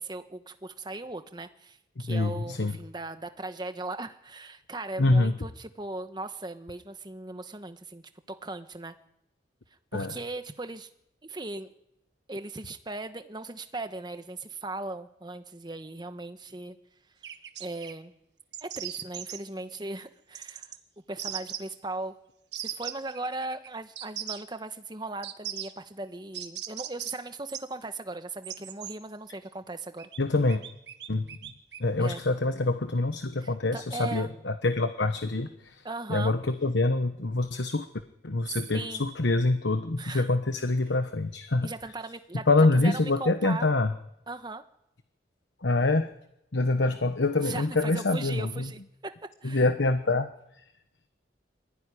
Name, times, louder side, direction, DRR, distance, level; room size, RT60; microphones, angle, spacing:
voice 1, 0.0-8.9 9.9-10.9 11.2-11.7 12.3-16.8 17.6-18.1 18.6-20.7 21.1-22.2 22.6-30.1 32.0-32.2 33.4-34.3 35.8-36.3 38.5-39.1 40.0-40.3 41.6-42.5 42.7-43.7 44.3-44.6 47.4-49.1 49.4-49.6, right 2 dB, 25° right, 9 dB, 1.3 m, -38 dB
voice 2, 2.0-2.7 5.0-5.3 9.9-10.1 30.2-30.6 31.1-31.5 31.8-35.8 36.1-37.9 38.2-41.7 42.5-43.9 45.6-46.1 46.5-48.7 49.4-50.3, left 2 dB, 85° left, 9 dB, 1.1 m, -25 dB
sound 1, 17.2-17.9 18.5-19.4 20.3-20.8 21.2-21.6 22.5-23.7 24.0-24.4 25.2-25.7 26.3-27.1 27.5-27.6 28.4-28.9 30.0-30.2 30.5-31.8, right 11 dB, 75° right, 1.6 m, -38 dB
23.0 x 15.0 x 10.0 m, 0.83 s
head